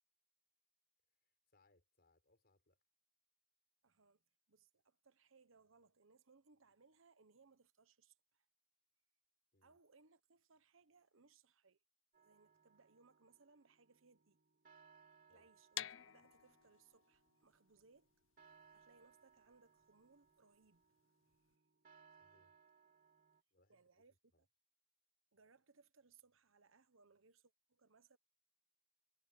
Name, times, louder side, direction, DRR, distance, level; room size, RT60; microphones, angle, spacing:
voice 1, 1.2-2.8 9.5-9.8 15.3-15.5 22.2-22.6 23.5-24.1 24.3-24.4, left 2 dB, 50° left, 5.6 m, -76 dB
voice 2, 3.8-8.5 9.6-11.8 12.2-14.4 14.9-18.1 18.7-20.8 23.7-24.1 25.3-28.2, right 4 dB, 65° right, 1.1 m, -70 dB
sound 1, 12.1-23.4, right 5 dB, 40° right, 2.8 m, -70 dB
sound 2, 15.7-21.5, left 12 dB, 65° left, 0.6 m, -52 dB
head